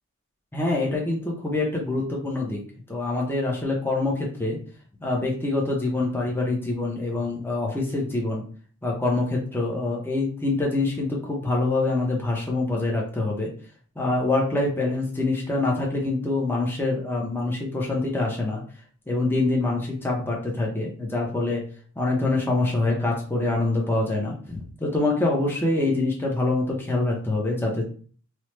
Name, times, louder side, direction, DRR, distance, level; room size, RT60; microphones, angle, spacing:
voice 1, 0.5-2.6 2.9-4.6 5.0-8.4 8.8-13.5 14.0-18.6 19.1-21.6 22.0-27.8, left 2 dB, 10° left, -2 dB, 0.5 m, -25 dB
3.1 x 2.0 x 3.0 m, 0.43 s
head